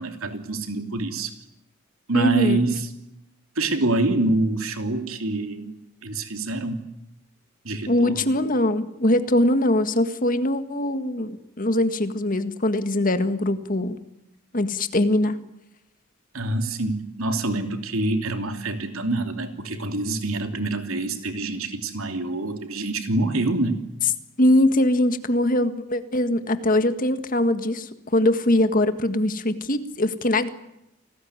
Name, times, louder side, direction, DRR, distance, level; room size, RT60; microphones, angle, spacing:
voice 1, 0.0-1.3 2.1-2.9 3.6-5.7 6.0-6.8 7.6-8.3 16.3-23.8, right 2 dB, 75° right, 6 dB, 3.0 m, -26 dB
voice 2, 2.1-2.6 7.9-14.0 14.5-15.4 24.4-30.5, left 1 dB, 40° left, 10 dB, 1.8 m, -22 dB
29.0 x 19.5 x 9.7 m, 0.87 s
head